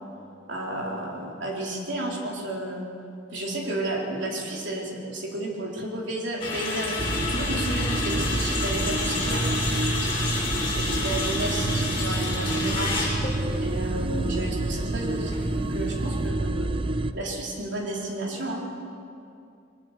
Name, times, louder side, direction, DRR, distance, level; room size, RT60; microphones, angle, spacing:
voice 1, 0.5-2.9 3.3-9.5 10.7-12.9 13.6-16.7 17.1-18.7, right 1 dB, 65° right, -1 dB, 3.9 m, -32 dB
sound 1, 6.4-16.3, left 3 dB, 30° left, 6.3 m, -31 dB
sound 2, 7.0-17.1, right 2 dB, 30° right, 0.6 m, -28 dB
sound 3, 10.3-17.1, equal, 70° left, 2.4 m, -43 dB
21.5 x 19.5 x 6.7 m, 2.5 s
head